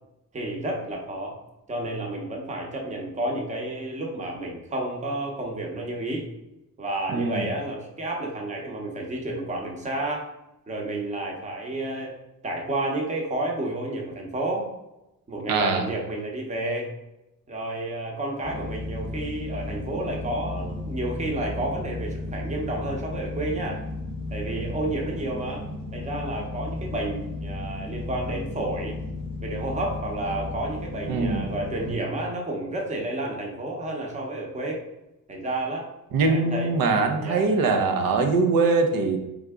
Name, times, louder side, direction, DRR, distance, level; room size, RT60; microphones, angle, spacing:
voice 1, 0.3-1.3 1.7-6.2 6.8-10.3 10.7-12.1 12.4-14.7 15.3-16.9 17.5-23.8 24.3-25.6 25.9-29.0 29.4-34.8 35.3-35.8 36.2-36.7 37.2-37.5, right 1 dB, 20° right, 0 dB, 0.7 m, -30 dB
voice 2, 7.1-7.5 15.5-15.8 31.1-31.4 36.1-39.2, right 4 dB, 90° right, 5 dB, 0.7 m, -22 dB
sound 1, 18.4-31.9, left 2 dB, 15° left, 0.7 m, -34 dB
3.8 x 3.5 x 3.5 m, 0.96 s
cardioid pair, 170°, 34 cm